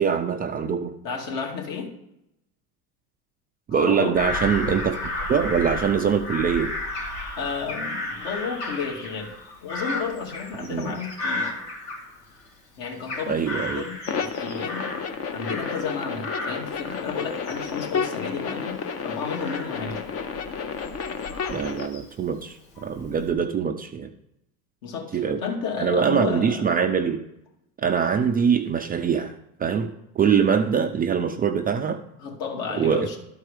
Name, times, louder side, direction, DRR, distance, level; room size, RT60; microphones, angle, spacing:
voice 1, 0.0-0.9 3.7-5.0 5.3-6.7 10.7-10.9 13.3-13.8 21.5-24.1 25.1-25.4 25.8-27.2 27.8-29.3 29.6-32.0 32.8-33.2, right 7 dB, 20° right, 5 dB, 0.4 m, -23 dB
voice 2, 1.0-1.9 3.7-4.2 7.4-9.3 9.6-11.5 12.8-14.9 15.3-20.0 24.8-26.7 32.2-33.2, left 5 dB, 60° left, 0 dB, 2.4 m, -32 dB
Bird vocalization bird call bird song / Crow, 4.1-12.5 12.8-15.9 16.2-22.2 22.7-23.3, left 2 dB, 85° left, 2.2 m, -34 dB
sound 1, 14.1-21.9, left 6 dB, 30° left, 0.8 m, -31 dB
12.0 x 4.6 x 4.9 m, 0.83 s
hypercardioid pair, 95°, 47 cm